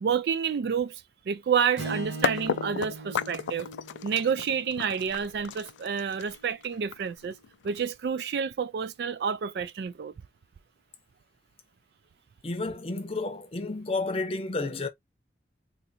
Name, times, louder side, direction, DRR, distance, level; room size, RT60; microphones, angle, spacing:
voice 1, 0.0-3.7 4.0-7.4 7.6-10.1, right 7 dB, 60° right, 0.3 m, -29 dB
Strum, 1.8-6.1, right 2 dB, 75° right, 1.2 m, -40 dB
sound 1, 2.2-8.1, left 7 dB, 80° left, 0.3 m, -33 dB
voice 2, 12.4-14.9, left 3 dB, 30° left, 0.7 m, -31 dB
3.8 x 2.5 x 2.8 m
head